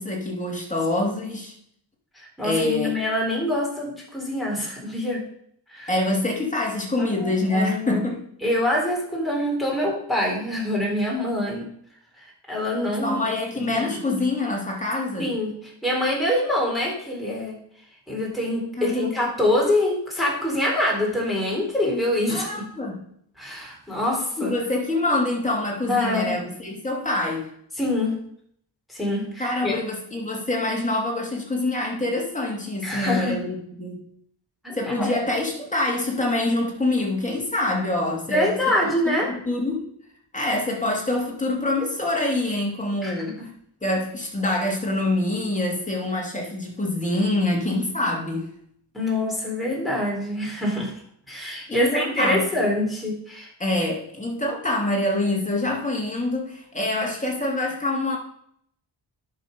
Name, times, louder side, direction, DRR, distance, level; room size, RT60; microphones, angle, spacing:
voice 1, 0.0-1.5 2.4-2.9 5.9-8.2 13.0-15.3 18.8-19.1 22.3-23.0 24.4-27.5 29.4-34.0 34.7-38.8 39.1-39.9 40.3-43.5 43.8-48.5 51.7-52.5 53.6-58.2, left 2 dB, 15° left, -2 dB, 2.8 m, -25 dB
voice 2, 2.1-5.2 5.7-5.9 7.0-8.0 8.4-11.6 12.2-13.9 15.2-17.6 18.1-22.7 23.4-24.5 25.9-26.3 27.8-28.1 28.9-29.7 32.8-33.4 34.6-35.2 38.3-39.3 43.0-43.3 48.9-50.9 51.3-53.5, left 1 dB, ahead, -4 dB, 3.9 m, -25 dB
10.0 x 6.5 x 5.4 m, 0.68 s
wide cardioid pair, 105°, 46 cm